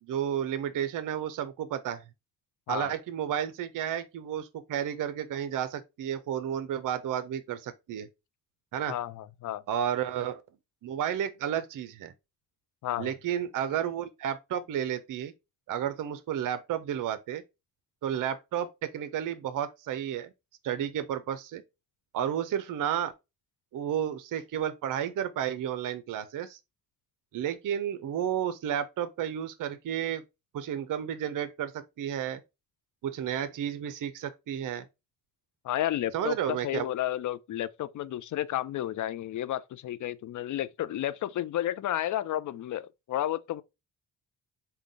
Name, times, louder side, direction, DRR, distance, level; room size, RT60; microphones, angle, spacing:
voice 1, 0.0-2.0 2.7-8.1 8.7-9.0 9.7-10.4 10.8-12.1 13.0-15.3 15.7-17.4 18.0-20.3 20.6-21.6 22.1-23.1 23.7-26.6 27.3-30.2 30.5-32.4 33.0-34.9 36.1-36.9, right 9 dB, 50° right, 0.6 m, -32 dB
voice 2, 8.9-9.6 12.8-13.1 35.6-43.6, left 12 dB, 50° left, 0.4 m, -32 dB
3.7 x 2.3 x 3.5 m
supercardioid pair, 50°, 41 cm